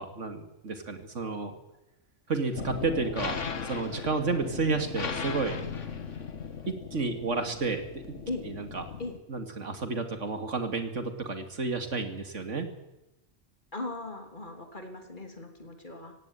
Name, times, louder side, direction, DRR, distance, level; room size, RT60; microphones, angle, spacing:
voice 1, 0.0-1.6 2.3-3.4 3.6-5.6 6.7-8.2 8.4-8.8 9.3-12.7, right 4 dB, 80° right, 7 dB, 2.9 m, -31 dB
sound 1, 2.5-9.2, left 5 dB, 80° left, 1.9 m, -37 dB
voice 2, 13.7-16.1, left 2 dB, 40° left, 4 dB, 3.4 m, -38 dB
17.0 x 17.0 x 9.2 m, 0.92 s
omnidirectional pair, 1.2 m